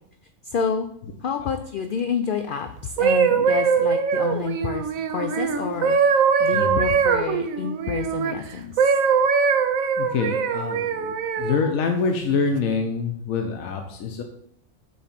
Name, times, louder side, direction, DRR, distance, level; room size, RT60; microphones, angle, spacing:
voice 1, 0.4-0.9 1.2-6.0 6.4-8.9, left 6 dB, 65° left, 6 dB, 0.5 m, -29 dB
sound 1, 2.8-8.3 8.8-11.6 12.3-12.6, right 6 dB, 75° right, 1.1 m, -22 dB
voice 2, 6.5-6.9 10.0-14.2, left 4 dB, 85° left, 4 dB, 1.2 m, -26 dB
8.4 x 3.1 x 5.8 m, 0.71 s
omnidirectional pair, 1.4 m